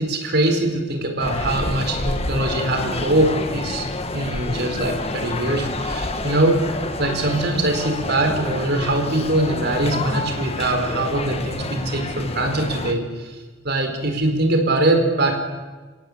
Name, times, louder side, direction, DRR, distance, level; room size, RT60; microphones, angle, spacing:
voice 1, 0.0-13.3 13.6-15.4, right 1 dB, 50° right, 4 dB, 4.6 m, -22 dB
sound 1, 1.2-12.9, left 2 dB, 30° left, 1.8 m, -28 dB
29.5 x 17.0 x 8.7 m, 1.3 s
head